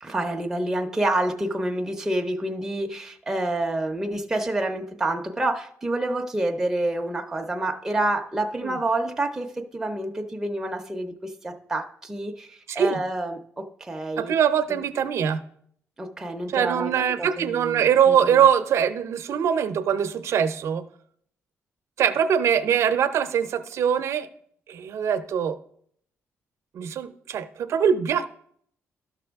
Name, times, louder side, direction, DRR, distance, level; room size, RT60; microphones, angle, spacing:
voice 1, 0.0-14.4 14.7-14.8 16.0-16.9 17.2-17.8 18.1-18.4, right 1 dB, 10° right, 2 dB, 0.5 m, -28 dB
voice 2, 12.7-13.0 14.2-15.4 16.5-20.8 22.0-24.3 24.7-25.6 26.7-28.2, right 8 dB, 60° right, 11 dB, 0.6 m, -22 dB
12.0 x 5.9 x 3.4 m, 0.65 s
cardioid pair, 150°, 5 cm